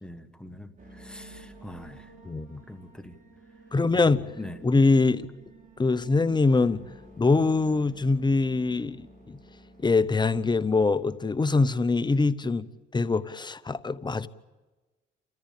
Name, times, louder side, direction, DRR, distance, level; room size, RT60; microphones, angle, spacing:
voice 1, 0.0-2.1 2.7-3.2 4.4-4.6, left 1 dB, 5° left, 1.6 m, -43 dB
sound 1, 0.8-12.3, right 1 dB, 40° right, 4.4 m, -52 dB
voice 2, 2.2-2.6 3.7-4.3 4.6-5.3 5.8-6.8 7.2-9.4 9.8-12.7 12.9-14.3, left 3 dB, 20° left, 0.8 m, -23 dB
28.5 x 14.0 x 8.6 m
cardioid pair, 90°, 20 cm